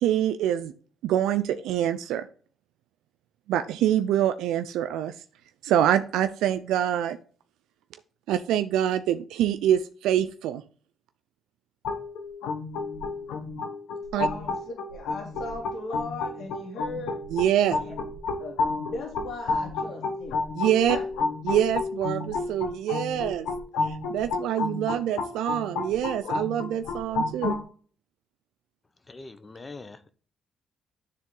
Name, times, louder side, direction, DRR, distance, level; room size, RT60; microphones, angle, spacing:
voice 1, 0.0-0.7 1.0-2.3 3.5-5.1 5.6-7.2 8.3-10.6 14.1-14.3 17.3-17.8 20.5-21.0 21.4-23.5 23.8-27.6, right 11 dB, 90° right, 10 dB, 0.4 m, -25 dB
sound 1, 11.8-27.6, left 3 dB, 90° left, 1.2 m, -31 dB
voice 2, 14.1-14.5 14.9-17.2 17.6-17.9 18.4-18.5 18.9-20.4 20.9-21.0, left 3 dB, 70° left, 0 dB, 2.5 m, -37 dB
voice 3, 29.0-30.1, left 3 dB, 25° left, 11 dB, 0.9 m, -43 dB
9.9 x 3.7 x 3.8 m, 0.42 s
cardioid pair, 90°, 0 cm